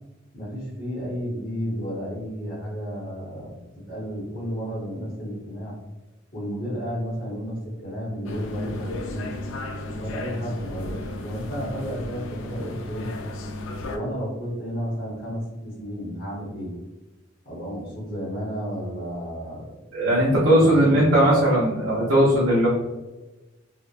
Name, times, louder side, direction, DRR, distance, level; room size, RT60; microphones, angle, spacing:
voice 1, 0.3-3.6 3.9-5.7 6.3-9.3 9.9-13.1 13.8-16.7 17.4-21.1, equal, 50° left, -6 dB, 0.9 m, -32 dB
sound 1, 8.3-14.0, left 1 dB, 75° left, 0.4 m, -34 dB
voice 2, 19.9-22.7, right 1 dB, 70° right, -7 dB, 0.6 m, -18 dB
2.9 x 2.0 x 2.4 m, 1.1 s
head